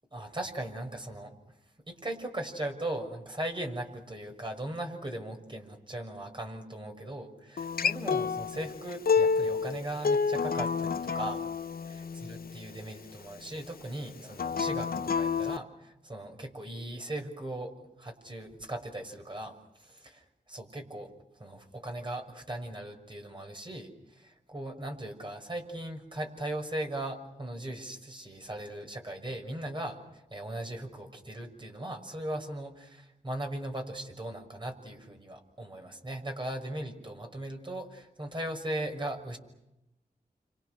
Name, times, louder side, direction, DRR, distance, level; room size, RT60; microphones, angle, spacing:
voice 1, 0.1-1.3 1.9-11.4 11.9-21.1 21.4-30.0 30.3-39.4, right 1 dB, 30° right, 3 dB, 6.2 m, -38 dB
Acoustic guitar, 7.6-12.8 14.3-15.6, left 5 dB, 75° left, 0.9 m, -29 dB
30.0 x 26.5 x 6.5 m, 0.90 s
wide cardioid pair, 70°, 15 cm